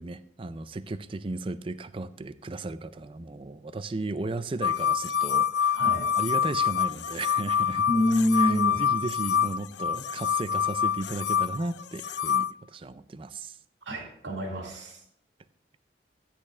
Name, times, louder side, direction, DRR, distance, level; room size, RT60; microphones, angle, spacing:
voice 1, 0.0-5.8 6.2-7.9 8.3-13.6, right 2 dB, 30° right, 13 dB, 0.4 m, -35 dB
sound 1, 4.6-12.5, left 8 dB, 70° left, 0.3 m, -26 dB
voice 2, 5.7-6.1 7.9-8.8 13.9-15.0, equal, 90° right, 1 dB, 2.4 m, -27 dB
15.0 x 10.0 x 2.5 m, 0.71 s
head